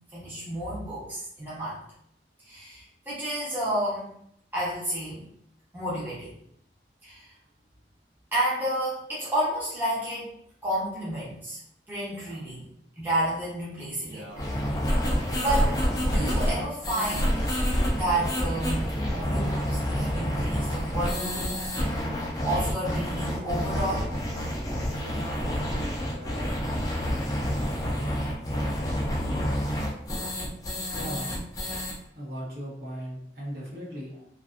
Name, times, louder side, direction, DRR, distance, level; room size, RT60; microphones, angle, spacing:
voice 1, 0.1-1.8 2.4-4.1 4.5-5.3 5.7-6.4 7.0-7.3 8.3-10.3 10.6-11.6 11.9-12.7 13.0-14.3 15.1-15.8 16.0-17.5 17.9-21.5 22.4-24.1, right 1 dB, 10° right, -8 dB, 0.7 m, -31 dB
Male speech man speaking, 12.0-12.4 13.1-13.4 13.9-14.4 15.2-15.7 16.4-16.7 17.2-17.6 18.0-18.6 19.1-19.7 21.1-22.0 22.7-23.1 23.8-24.2 24.9-25.4 25.8-26.5 27.2-27.7, right 1 dB, 75° right, 0.5 m, -47 dB
sound 1, 14.3-31.9, equal, 20° left, 0.4 m, -28 dB
voice 2, 30.9-31.3 32.1-34.3, equal, 60° right, -6 dB, 1.0 m, -37 dB
2.5 x 2.4 x 2.4 m, 0.70 s
head